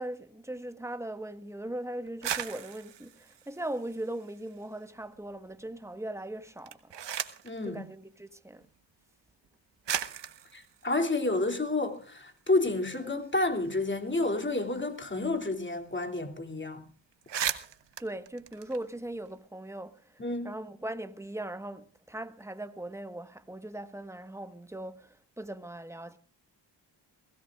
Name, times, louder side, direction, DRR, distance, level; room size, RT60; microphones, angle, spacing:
voice 1, 0.0-6.8 7.7-8.6 18.0-20.0 20.4-26.2, right 1 dB, 5° right, 1.3 m, -39 dB
sound 1, 2.1-4.6 5.0-5.7 6.5-7.6 8.6-8.7 9.4-9.5 9.8-12.2 12.5-12.6 12.9-15.5 15.8-15.9 16.2-16.4 16.8-16.9 17.1-19.3, right 9 dB, 65° right, 1.2 m, -38 dB
voice 2, 7.4-7.8 10.5-16.8 20.2-20.6, left 2 dB, 25° left, 2.8 m, -30 dB
22.5 x 17.0 x 2.5 m
supercardioid pair, 45°, 47 cm